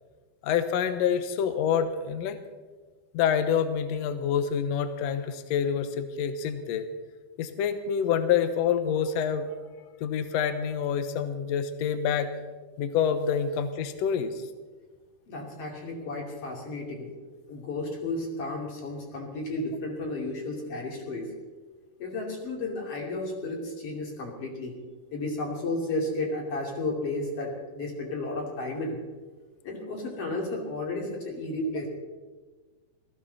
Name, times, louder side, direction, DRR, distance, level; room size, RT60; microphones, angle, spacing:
voice 1, 0.4-2.4 3.1-6.9 7.4-9.5 10.0-12.3 12.8-14.5, left 8 dB, 70° left, 10 dB, 1.6 m, -27 dB
voice 2, 15.3-17.1 17.5-21.3 22.0-24.8 25.1-29.0 29.6-31.9, left 2 dB, 40° left, -1 dB, 3.5 m, -33 dB
19.0 x 15.0 x 4.1 m, 1.3 s
omnidirectional pair, 4.3 m